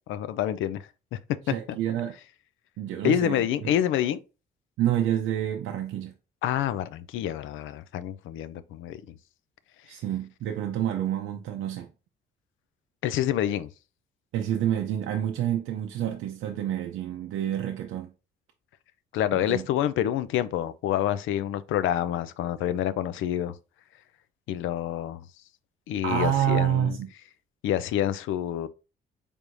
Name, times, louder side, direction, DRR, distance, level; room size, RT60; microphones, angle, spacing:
voice 1, 0.1-1.2 1.7-1.8 3.0-4.2 6.4-9.2 13.0-13.7 19.1-23.6 24.5-25.2 25.9-27.0 27.6-28.7, left 11 dB, 85° left, 0.4 m, -27 dB
voice 2, 1.5-2.1 2.8-3.7 4.8-6.1 9.8-11.9 14.3-18.1 19.3-19.7 26.0-27.1, right 11 dB, 85° right, 0.5 m, -28 dB
4.6 x 3.4 x 2.6 m
cardioid pair, 90°, 20 cm